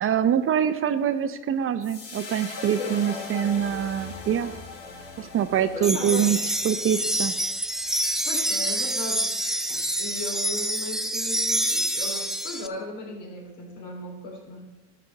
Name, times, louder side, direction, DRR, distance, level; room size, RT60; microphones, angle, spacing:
voice 1, 0.0-4.5 5.2-6.4 6.6-7.3, right 9 dB, 35° right, 11 dB, 0.7 m, -24 dB
sound 1, 1.8-8.2, left 4 dB, 85° left, 2.3 m, -41 dB
voice 2, 2.6-3.3 5.7-6.3 8.2-9.3 9.7-14.6, left 2 dB, 60° left, 1 dB, 3.1 m, -37 dB
sound 2, 5.8-12.7, right 1 dB, ahead, 0.5 m, -27 dB
12.0 x 5.1 x 6.9 m, 1.1 s
hypercardioid pair, 85°, 36 cm